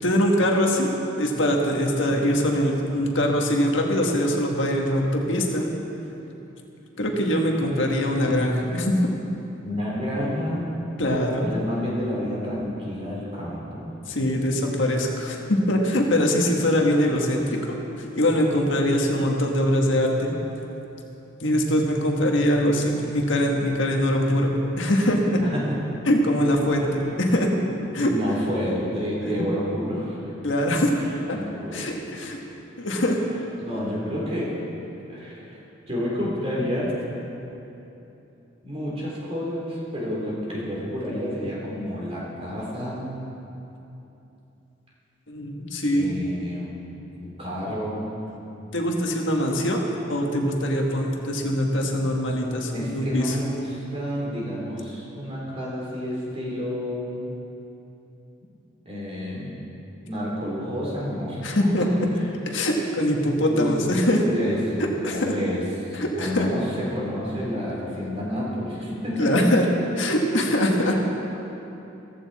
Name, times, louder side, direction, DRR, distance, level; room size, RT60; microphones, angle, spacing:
voice 1, 0.0-5.7 7.0-9.1 11.0-11.5 14.1-17.8 18.2-20.3 21.4-24.5 24.8-25.4 26.1-27.5 27.9-28.1 29.2-29.4 30.4-30.9 31.3-31.4 31.7-32.4 32.8-33.2 45.3-46.1 48.7-49.8 50.1-53.4 61.4-61.9 62.5-64.2 64.8-65.3 65.9-66.5 69.2-69.6 70.0-71.0, equal, 75° left, 0 dB, 1.6 m, -23 dB
voice 2, 9.6-10.7 11.4-13.9 25.4-25.8 28.1-30.2 31.0-32.1 33.6-34.6 35.1-35.6 35.9-37.0 38.6-43.1 45.9-46.7 47.1-48.1 52.7-57.3 58.9-59.6 60.0-62.3 63.3-65.6 65.9-69.5, equal, 30° right, -5 dB, 3.5 m, -29 dB
15.0 x 14.5 x 4.2 m, 3.0 s
head